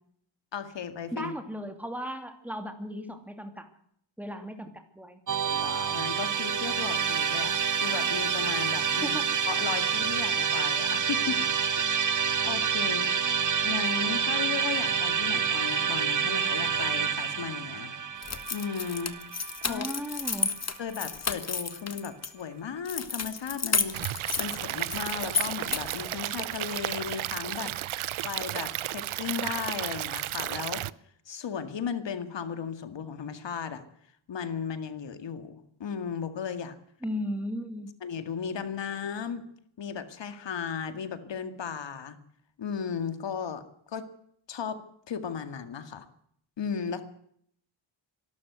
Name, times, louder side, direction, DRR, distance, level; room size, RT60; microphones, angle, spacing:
voice 1, 0.5-1.3 5.4-9.2 9.5-13.1 13.6-18.0 18.5-19.9 20.8-30.8 31.3-33.8 34.3-36.8 38.0-39.4 39.8-42.2 42.6-44.1 44.5-44.8 45.1-46.1 46.6-47.0, left 7 dB, 65° left, 10 dB, 2.1 m, -36 dB
voice 2, 1.1-3.7 4.2-5.2 8.9-9.2 13.4-13.5 19.6-20.5 37.0-37.9, equal, 5° right, 6 dB, 2.8 m, -36 dB
Musical instrument, 5.3-20.4, right 6 dB, 40° right, 1.2 m, -28 dB
sound 1, 18.2-22.3 22.8-26.1, left 5 dB, 35° left, 1.6 m, -32 dB
Stream / Liquid, 23.9-30.9, right 14 dB, 90° right, 0.7 m, -33 dB
25.0 x 12.5 x 8.1 m, 0.68 s
wide cardioid pair, 125°, 47 cm